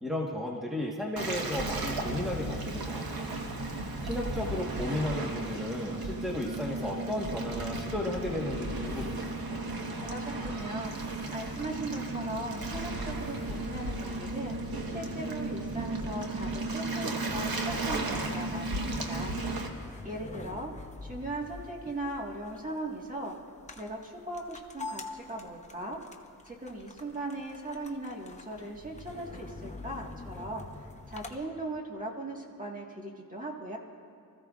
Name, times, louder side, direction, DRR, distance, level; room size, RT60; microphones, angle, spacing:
voice 1, 0.0-3.3 4.0-9.2, left 1 dB, ahead, -3 dB, 1.4 m, -34 dB
Waves surf, 1.2-19.7, right 2 dB, 85° right, 1.4 m, -34 dB
voice 2, 10.0-19.4 20.0-20.7 21.0-23.3 23.8-26.0 26.4-33.8, right 2 dB, 25° right, -1 dB, 1.7 m, -39 dB
sound 1, 17.9-31.4, left 3 dB, 20° left, 0.9 m, -46 dB
24.5 x 14.5 x 2.5 m, 2.6 s
wide cardioid pair, 125°, 35 cm